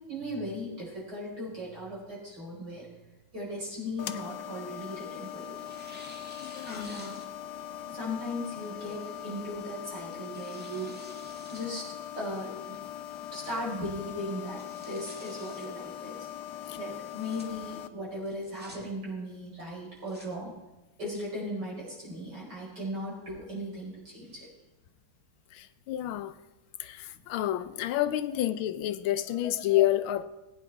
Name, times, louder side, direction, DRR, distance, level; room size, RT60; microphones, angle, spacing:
voice 1, 0.1-2.9 3.3-5.6 6.6-7.2 7.9-10.9 11.5-11.8 12.2-12.8 13.3-16.2 16.7-20.5 21.0-24.5, left 1 dB, 55° right, -5 dB, 5.8 m, -37 dB
Tearing, 3.8-5.1 5.6-7.6 8.0-8.1 9.0-9.3 9.9-11.7 12.1-12.2 12.7-13.1 13.5-13.6 13.9-14.0 14.4-15.7 17.0-17.4 18.2-18.8 19.8-20.3, equal, 5° right, 1.8 m, -51 dB
sound 1, 4.0-17.9, left 11 dB, 70° left, 1.0 m, -41 dB
voice 2, 6.4-6.9 16.7-16.8 25.5-26.3 26.8-30.2, left 13 dB, 90° left, 12 dB, 1.5 m, -29 dB
20.0 x 9.3 x 3.5 m, 1.0 s
omnidirectional pair, 2.2 m